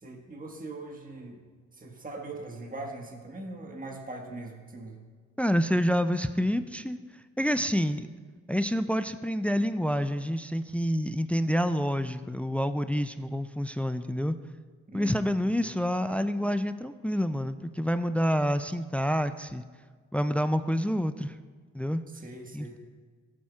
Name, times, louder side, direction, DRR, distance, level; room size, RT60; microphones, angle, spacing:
voice 1, 0.0-1.4 1.7-5.0 14.9-15.3 22.1-22.8, right 2 dB, 25° right, 1 dB, 1.5 m, -41 dB
voice 2, 5.4-7.0 7.4-8.1 8.5-14.3 14.9-19.6 20.1-21.4 21.7-22.0 22.5-22.8, equal, 5° left, 12 dB, 0.4 m, -28 dB
13.5 x 7.4 x 2.4 m, 1.5 s
supercardioid pair, 50°, 32 cm